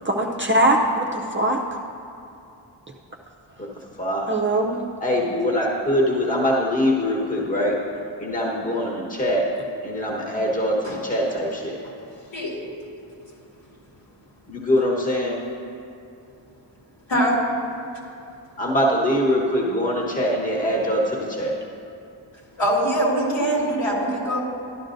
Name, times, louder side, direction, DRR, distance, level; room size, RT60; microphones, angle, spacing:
voice 1, 0.0-1.6 4.3-4.8, right 1 dB, 25° right, 0 dB, 0.5 m, -21 dB
voice 2, 5.0-7.8 8.2-9.5 9.8-11.8 14.5-15.4 18.6-21.6, equal, 15° left, -3 dB, 1.2 m, -23 dB
voice 3, 22.6-24.4, right 1 dB, 70° left, -4 dB, 2.5 m, -22 dB
12.5 x 11.5 x 2.6 m, 2.7 s
wide cardioid pair, 145°, 46 cm